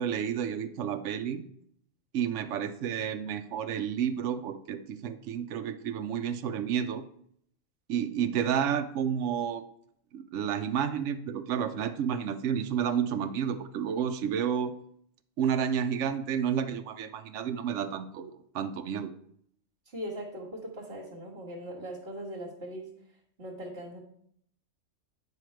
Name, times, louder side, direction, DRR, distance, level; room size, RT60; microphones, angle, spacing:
voice 1, 0.0-1.4 2.1-7.0 7.9-9.6 10.1-14.7 15.4-19.1, right 8 dB, 75° right, 9 dB, 1.0 m, -30 dB
voice 2, 19.9-22.9 23.4-24.0, equal, 55° right, -3 dB, 1.9 m, -40 dB
9.6 x 5.7 x 4.6 m, 0.67 s
omnidirectional pair, 1.3 m